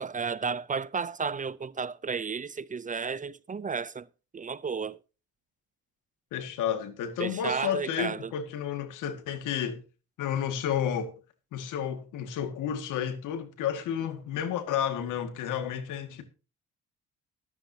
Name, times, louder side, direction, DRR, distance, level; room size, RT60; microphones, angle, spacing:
voice 1, 0.0-4.1 4.3-5.0 7.2-8.3, right 5 dB, 25° right, 0.5 m, -33 dB
voice 2, 6.3-9.8 10.2-11.1 11.5-16.2, left 8 dB, 90° left, 2.0 m, -31 dB
13.5 x 13.0 x 2.8 m
cardioid pair, 90°, 30 cm